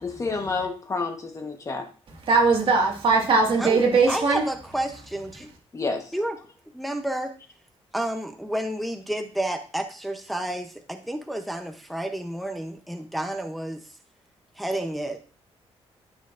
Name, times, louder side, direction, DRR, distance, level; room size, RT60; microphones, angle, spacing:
voice 1, 0.0-1.9 5.7-6.1, left 4 dB, 30° left, 1.2 m, -29 dB
voice 2, 2.2-4.4, right 4 dB, 50° right, 1.9 m, -20 dB
voice 3, 4.1-5.5 6.1-6.4 6.7-7.3 7.9-13.8 14.6-15.3, right 1 dB, ahead, 0.7 m, -30 dB
12.5 x 6.3 x 2.5 m
wide cardioid pair, 155°, 11 cm